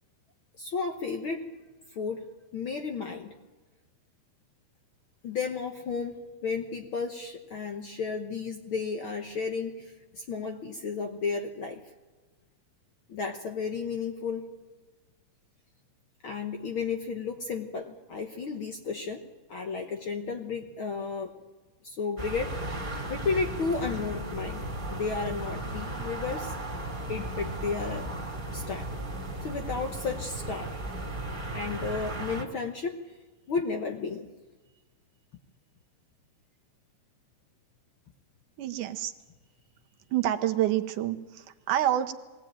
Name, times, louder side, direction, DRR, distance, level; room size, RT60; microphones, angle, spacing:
voice 1, 0.6-1.4 1.9-2.3 2.5-3.3 5.2-11.8 13.1-14.5 16.2-19.2 19.5-21.3 21.8-22.6 23.1-26.5 27.0-28.1 28.5-28.9 29.4-30.8 31.5-33.0 33.5-34.3, left 5 dB, 60° left, 4 dB, 1.5 m, -33 dB
sound 1, 22.2-32.4, right 1 dB, 15° right, 2.3 m, -36 dB
voice 2, 38.6-39.1 40.1-42.1, right 12 dB, 80° right, 7 dB, 2.4 m, -27 dB
22.0 x 17.5 x 9.0 m, 1.3 s
omnidirectional pair, 3.7 m